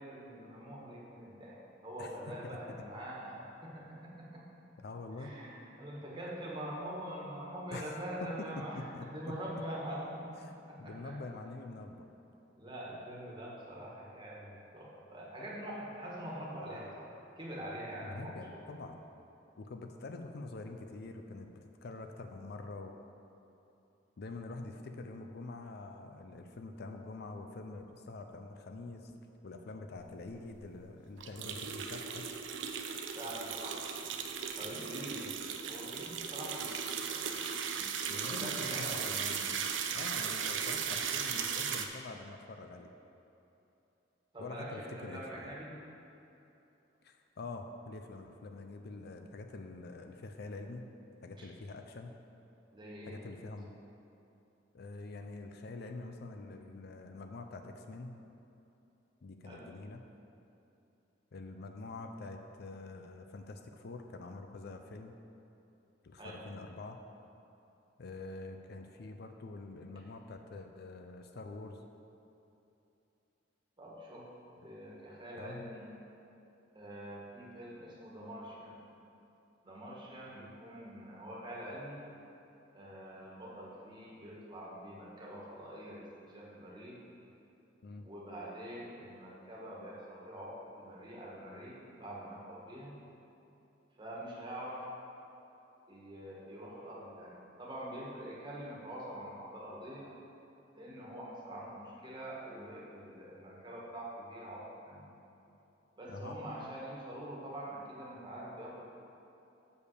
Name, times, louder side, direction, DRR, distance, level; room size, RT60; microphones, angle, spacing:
voice 1, 0.0-4.4 5.2-11.1 12.6-18.8 33.1-33.8 34.5-35.2 35.6-37.4 38.1-39.1 44.3-45.8 51.4-51.5 52.7-53.2 59.4-59.7 66.2-66.4 73.8-74.3 74.6-75.9 76.7-78.9 79.6-82.0 82.7-87.0 88.0-93.0 94.0-94.9 95.9-100.1 100.7-105.1 106.0-108.9, equal, 25° right, -5 dB, 1.5 m, -45 dB
voice 2, 2.0-2.3 4.8-5.3 7.7-7.9 8.4-9.1 10.4-10.5 10.8-12.1 18.0-19.0 19.6-22.9 24.2-29.1 29.4-32.2 34.6-34.9 38.1-42.9 44.4-45.5 47.0-50.9 51.2-52.1 53.1-53.8 54.7-58.2 59.2-60.0 61.3-65.1 66.0-67.0 68.0-71.8 75.3-75.7 87.8-88.1 106.1-106.4, left 3 dB, 60° left, 5 dB, 0.5 m, -46 dB
sound 1, 30.2-30.3 30.5-30.6 31.2-41.9, right 7 dB, 75° right, 0.6 m, -37 dB
6.8 x 5.3 x 6.5 m, 2.9 s
head